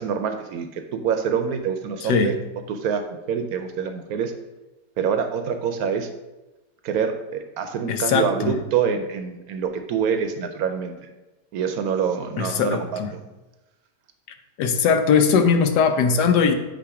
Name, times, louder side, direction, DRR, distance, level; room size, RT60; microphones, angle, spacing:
voice 1, 0.0-2.3 2.7-4.3 5.0-6.1 6.8-11.1 11.5-13.2, right 7 dB, 70° right, 7 dB, 1.0 m, -26 dB
voice 2, 2.0-2.3 7.9-8.5 12.4-13.1 14.6-16.5, left 6 dB, 80° left, 7 dB, 1.2 m, -20 dB
8.4 x 2.9 x 4.8 m, 1.1 s
omnidirectional pair, 1.8 m